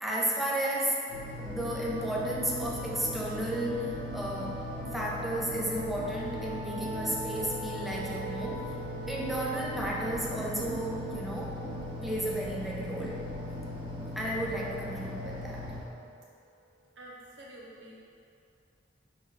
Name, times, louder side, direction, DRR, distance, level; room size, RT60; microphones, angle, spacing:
voice 1, 0.0-1.0 1.4-4.6 4.9-8.7 9.1-11.6 12.0-13.3 14.2-15.6, right 1 dB, ahead, -5 dB, 0.6 m, -33 dB
sound 1, 1.1-15.8, left 1 dB, 30° right, 1.3 m, -39 dB
sound 2, 1.4-16.7, right 3 dB, 40° left, 1.3 m, -44 dB
voice 2, 17.0-18.0, right 1 dB, 85° right, -4 dB, 1.2 m, -48 dB
4.7 x 4.5 x 5.0 m, 2.5 s
head